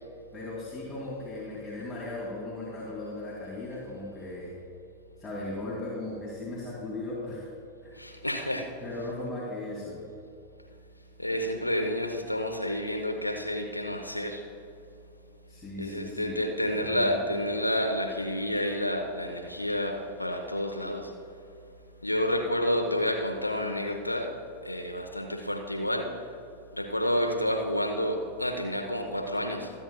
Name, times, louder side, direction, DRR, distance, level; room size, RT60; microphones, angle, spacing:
voice 1, 0.3-4.6 5.2-7.5 7.8-8.0 8.8-10.0 15.5-17.4, left 2 dB, 5° left, -7 dB, 2.5 m, -37 dB
voice 2, 8.0-8.7 11.2-14.4 15.8-21.1 22.0-24.3 24.6-26.1 26.7-29.7, left 1 dB, 85° left, 3 dB, 0.8 m, -29 dB
24.0 x 8.5 x 2.2 m, 2.6 s
figure-of-eight pair, 90°, 0 cm